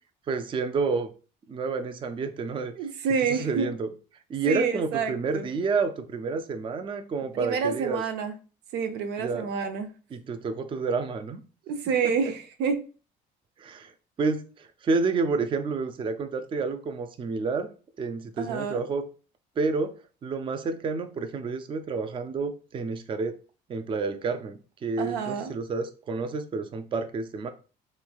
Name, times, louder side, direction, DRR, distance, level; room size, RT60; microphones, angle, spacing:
voice 1, 0.3-1.1 1.5-2.7 3.3-3.9 4.3-8.0 9.2-9.5 10.1-11.4 12.0-12.2 13.6-13.9 14.2-17.7 18.0-19.1 19.6-23.4 23.7-27.5, right 4 dB, 30° right, 0.4 m, -29 dB
voice 2, 2.8-3.7 4.5-5.5 7.3-8.3 8.7-9.9 11.7-12.8 18.4-18.8 25.0-25.5, right 6 dB, 90° right, 0.6 m, -28 dB
3.4 x 3.1 x 2.3 m
cardioid pair, 110°, 17 cm